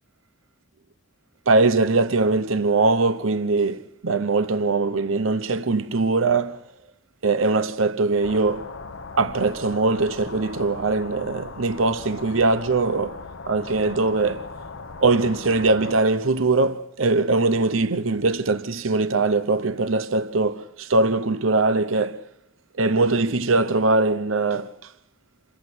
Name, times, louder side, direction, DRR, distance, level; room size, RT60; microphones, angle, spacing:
voice 1, 1.5-6.6 7.2-8.7 9.2-13.2 13.5-14.5 15.0-22.2 22.8-24.7, right 3 dB, 85° right, 0.9 m, -21 dB
sound 1, 8.2-16.0, left 4 dB, 80° left, 1.2 m, -38 dB
28.0 x 14.5 x 7.9 m
head